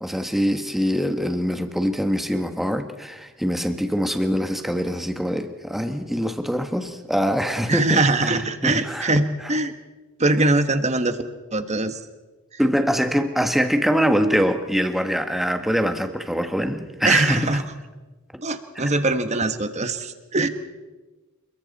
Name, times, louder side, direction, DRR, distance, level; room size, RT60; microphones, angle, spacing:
voice 1, 0.0-9.1 12.6-17.6 18.3-18.4 18.8-18.9, equal, ahead, 6 dB, 1.4 m, -24 dB
voice 2, 7.7-9.7 10.2-11.2 11.5-12.0 17.0-17.6 18.4-20.5, right 2 dB, 35° right, 9 dB, 1.4 m, -22 dB
28.5 x 22.0 x 4.2 m, 1.2 s
head